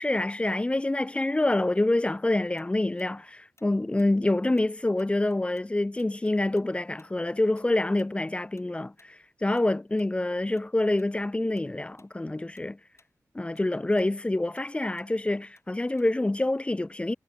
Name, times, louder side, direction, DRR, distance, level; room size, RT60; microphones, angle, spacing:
voice 1, 0.0-12.8 13.3-17.1, left 2 dB, 15° left, 0.3 m, -27 dB
Tick-tock, 2.6-5.7 6.0-10.7 11.0-11.2 11.6-12.1 12.4-16.4, left 3 dB, 45° left, 5.8 m, -65 dB
cardioid pair, 40°, 7 cm